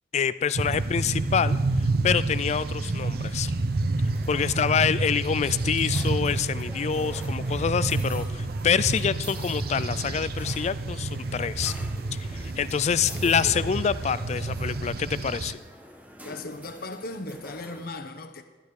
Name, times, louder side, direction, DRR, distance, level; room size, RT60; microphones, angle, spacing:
voice 1, 0.1-3.5 4.3-11.7 12.1-15.6, left 7 dB, 40° left, 16 dB, 0.3 m, -26 dB
sound 1, 0.5-15.5, right 2 dB, 60° right, 0.6 m, -29 dB
sound 2, 4.0-17.9, equal, 10° right, 1.1 m, -46 dB
voice 2, 16.2-18.4, left 2 dB, 55° left, 7 dB, 0.9 m, -37 dB
12.0 x 11.5 x 4.8 m, 1.3 s
head